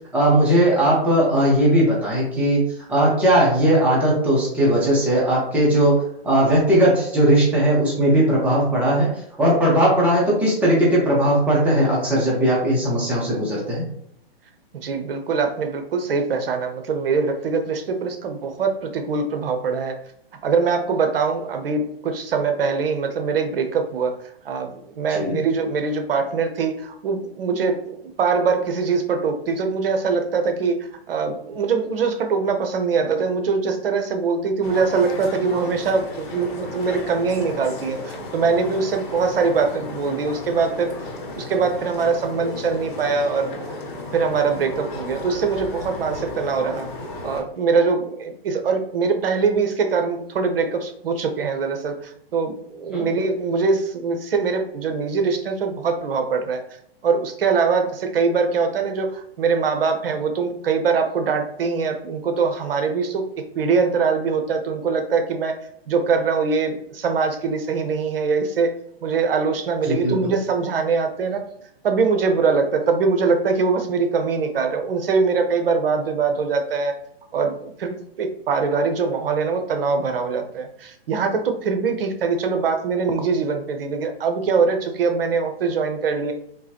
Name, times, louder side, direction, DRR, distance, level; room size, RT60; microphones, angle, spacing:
voice 1, 0.1-2.6 2.9-6.0 6.2-9.1 9.4-13.8 25.1-25.4 52.9-53.0 69.9-70.3, right 1 dB, 5° right, -6 dB, 0.8 m, -18 dB
voice 2, 14.7-19.9 20.4-24.1 24.4-30.8 31.1-40.9 41.3-43.5 44.1-46.9 47.2-56.6 57.0-65.6 65.9-68.7 69.0-71.4 71.8-77.0 77.3-86.3, right 5 dB, 65° right, 6 dB, 0.8 m, -22 dB
sound 1, 34.6-47.4, left 2 dB, 55° left, 1.3 m, -34 dB
3.8 x 2.9 x 2.8 m, 0.71 s
hypercardioid pair, 140°, 30 cm